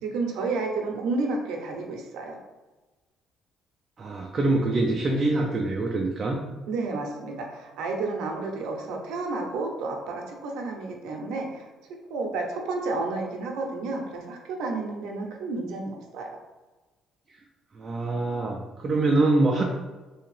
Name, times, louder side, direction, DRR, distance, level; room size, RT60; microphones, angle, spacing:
voice 1, 0.0-2.4 6.7-16.3, right 3 dB, 85° right, 1 dB, 0.6 m, -31 dB
voice 2, 4.0-6.4 17.7-19.6, right 2 dB, 30° right, 0 dB, 0.3 m, -24 dB
3.4 x 2.8 x 3.2 m, 1.2 s
cardioid pair, 160°, 0 cm